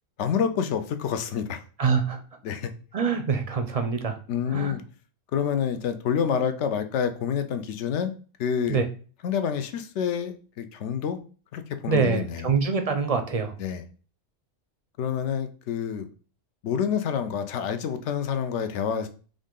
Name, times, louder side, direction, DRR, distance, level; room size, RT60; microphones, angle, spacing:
voice 1, 0.2-1.6 2.4-2.7 4.3-4.8 5.3-8.1 8.4-8.8 9.2-11.2 11.5-12.5 13.6-13.8 15.0-16.1 16.6-19.1, left 7 dB, 75° left, 9 dB, 0.9 m, -28 dB
voice 2, 1.8-2.2 2.9-4.2 4.5-4.7 8.7-8.9 11.9-13.5, right 5 dB, 50° right, 7 dB, 0.4 m, -25 dB
5.0 x 2.6 x 3.7 m, 0.38 s
omnidirectional pair, 1.2 m